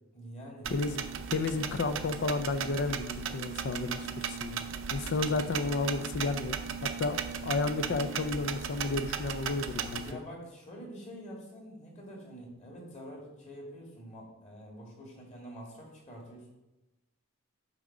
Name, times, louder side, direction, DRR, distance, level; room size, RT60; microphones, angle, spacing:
voice 1, 0.1-0.7 10.0-16.5, equal, 35° left, -1 dB, 2.2 m, -46 dB
sound 1, 0.6-10.1, right 7 dB, 65° right, 0.6 m, -36 dB
voice 2, 0.7-1.1 1.3-4.6 4.9-6.6 6.8-10.0, left 3 dB, 55° left, 10 dB, 0.4 m, -32 dB
9.1 x 3.7 x 6.1 m, 1.0 s
head